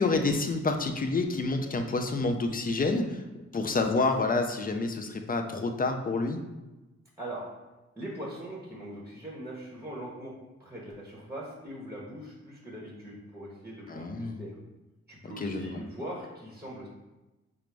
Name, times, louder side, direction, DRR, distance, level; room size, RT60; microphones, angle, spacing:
voice 1, 0.0-3.2 3.5-6.4 13.9-14.4 15.2-15.7, left 3 dB, 30° left, 6 dB, 0.5 m, -28 dB
voice 2, 7.2-7.5 8.0-10.3 10.6-14.6 15.1-16.9, right 1 dB, 10° right, -4 dB, 1.0 m, -41 dB
4.6 x 2.0 x 3.3 m, 1.1 s
cardioid pair, 60°, 29 cm